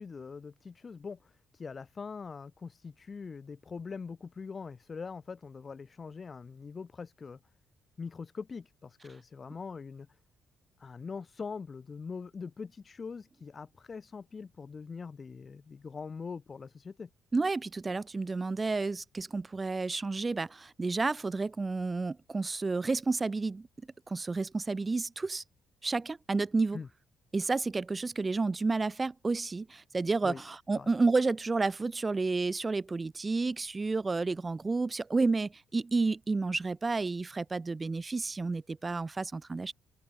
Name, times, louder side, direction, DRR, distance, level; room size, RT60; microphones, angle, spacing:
voice 1, 0.0-7.4 8.0-10.1 10.8-17.1 26.7-26.9 30.2-30.4 30.7-30.9, left 5 dB, 25° left, 2.6 m, -42 dB
voice 2, 17.3-23.7 24.1-25.4 25.8-26.8 27.3-39.7, right 3 dB, 15° right, 1.0 m, -31 dB
cardioid pair, 175°, 0 cm